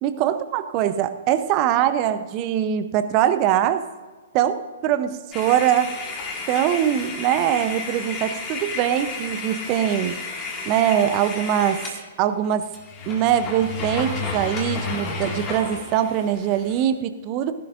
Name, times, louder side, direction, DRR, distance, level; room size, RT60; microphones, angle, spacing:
voice 1, 0.0-3.9 4.3-5.9 6.5-10.2 10.6-11.9 12.2-12.7 13.1-17.5, right 10 dB, 30° right, 11 dB, 0.7 m, -22 dB
sound 1, 5.3-12.0 12.4-12.5 12.7-16.9, left 4 dB, 20° left, 2.1 m, -32 dB
17.0 x 11.5 x 2.6 m, 1.3 s
figure-of-eight pair, 115°, 0 cm